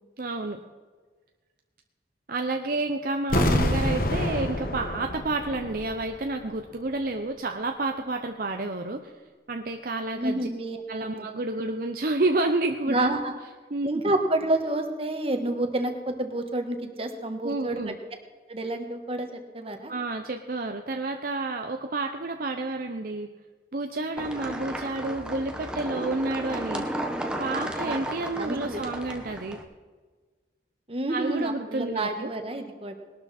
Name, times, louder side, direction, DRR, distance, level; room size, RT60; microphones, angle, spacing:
voice 1, 0.2-0.6 2.3-9.1 9.5-10.4 10.9-13.1 13.7-13.9 17.4-17.9 19.9-23.3 23.7-26.9 27.4-29.6 31.1-32.3, right 2 dB, 50° right, 5 dB, 0.7 m, -30 dB
sound 1, 3.3-6.2 6.4-6.5, left 1 dB, 50° left, 1.4 m, -27 dB
voice 2, 10.1-11.2 11.6-11.7 12.9-13.3 13.8-17.8 18.5-19.9 27.6-28.0 28.3-28.8 30.9-33.0, right 1 dB, 30° right, 5 dB, 1.4 m, -29 dB
sound 2, 24.2-29.6, right 1 dB, 5° right, 1.0 m, -34 dB
20.0 x 12.0 x 4.3 m, 1.4 s
head